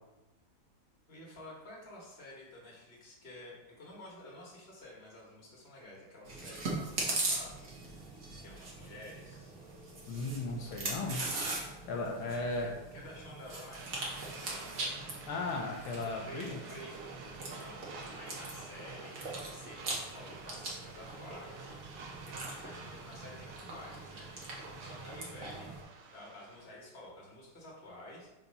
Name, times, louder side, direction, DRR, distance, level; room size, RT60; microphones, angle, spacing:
voice 1, 1.1-7.6 8.4-9.5 12.1-14.8 16.2-17.2 17.6-19.2 19.5-21.7 22.3-25.8 26.1-28.3, left 1 dB, 30° left, -3 dB, 1.7 m, -51 dB
Chewing mastication, 6.3-25.8, right 2 dB, 45° right, 1.4 m, -41 dB
voice 2, 10.1-11.3 11.9-12.7 15.3-16.6, left 2 dB, 75° left, -1 dB, 1.6 m, -36 dB
sound 1, 13.7-26.8, right 3 dB, 70° right, 1.5 m, -50 dB
4.4 x 4.2 x 5.4 m, 1.0 s
omnidirectional pair, 2.4 m